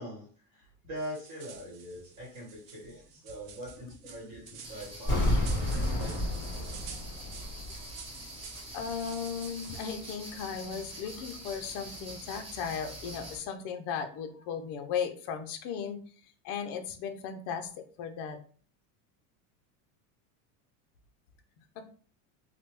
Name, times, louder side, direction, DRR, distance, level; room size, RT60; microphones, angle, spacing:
voice 1, 0.0-6.3, equal, 45° right, -3 dB, 1.2 m, -43 dB
sound 1, 1.0-9.9, right 7 dB, 90° right, 0.7 m, -51 dB
sound 2, 4.6-13.4, right 1 dB, 15° right, 0.7 m, -45 dB
sound 3, 5.1-8.0 8.2-8.3, left 1 dB, 10° left, 1.6 m, -30 dB
voice 2, 8.7-18.4 21.8-21.9, left 7 dB, 40° left, 6 dB, 0.4 m, -36 dB
3.2 x 2.1 x 3.0 m, 0.43 s
cardioid pair, 165°, 40 cm